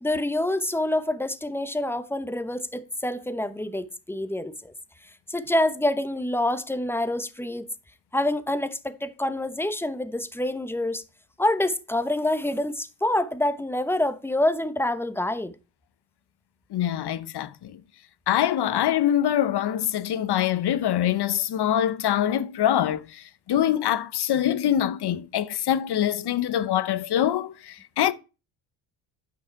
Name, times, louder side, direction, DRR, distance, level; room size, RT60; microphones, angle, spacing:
voice 1, 0.0-4.7 5.3-7.7 8.1-11.0 11.4-15.5, left 1 dB, 5° left, 0.9 m, -26 dB
voice 2, 16.7-17.8 18.3-28.1, left 11 dB, 50° left, 0.8 m, -24 dB
9.7 x 6.2 x 4.6 m
cardioid pair, 80°, 49 cm